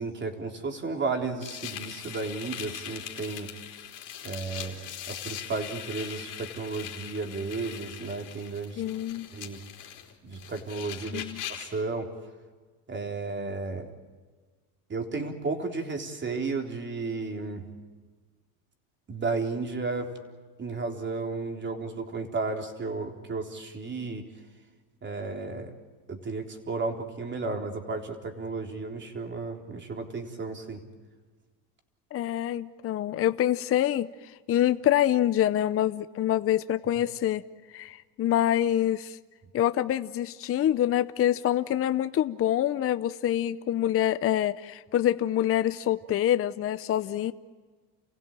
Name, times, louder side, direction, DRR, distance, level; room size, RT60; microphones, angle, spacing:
voice 1, 0.0-3.5 4.2-8.8 9.3-9.6 10.2-11.2 11.5-12.1 12.9-13.9 14.9-17.6 19.1-20.1 20.6-24.2 25.0-25.7 26.1-30.8, right 3 dB, 25° right, 4 dB, 3.7 m, -33 dB
sound 1, 1.4-11.8, left 10 dB, 50° left, 4.0 m, -41 dB
voice 2, 8.8-9.3 11.1-11.4 32.1-37.4 37.7-39.2 39.5-47.3, left 12 dB, 35° left, 12 dB, 0.7 m, -26 dB
29.5 x 16.5 x 9.1 m, 1.4 s
supercardioid pair, 110°, 41 cm